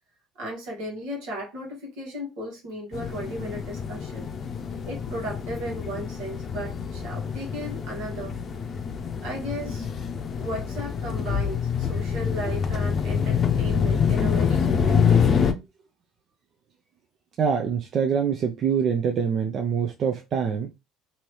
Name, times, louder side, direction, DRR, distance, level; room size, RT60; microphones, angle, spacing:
voice 1, 0.4-4.3 4.8-8.3 9.2-9.9 10.4-15.4, equal, 75° right, 1.4 m, -35 dB
sound 1, 2.9-15.5, left 6 dB, 45° left, 0.6 m, -26 dB
voice 2, 17.4-20.7, right 7 dB, 55° right, 0.5 m, -25 dB
3.0 x 2.8 x 2.9 m
hypercardioid pair, 70°, 0 cm